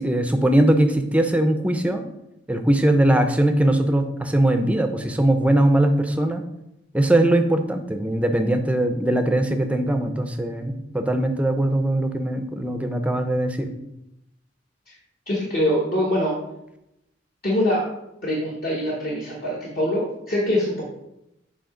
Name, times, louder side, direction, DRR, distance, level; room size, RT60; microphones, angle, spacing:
voice 1, 0.0-2.0 2.5-6.4 6.9-13.7, right 1 dB, 5° right, 6 dB, 0.5 m, -20 dB
voice 2, 15.3-16.3 17.4-17.8 18.2-20.8, left 1 dB, 50° left, -4 dB, 1.1 m, -23 dB
7.6 x 2.8 x 4.9 m, 0.87 s
head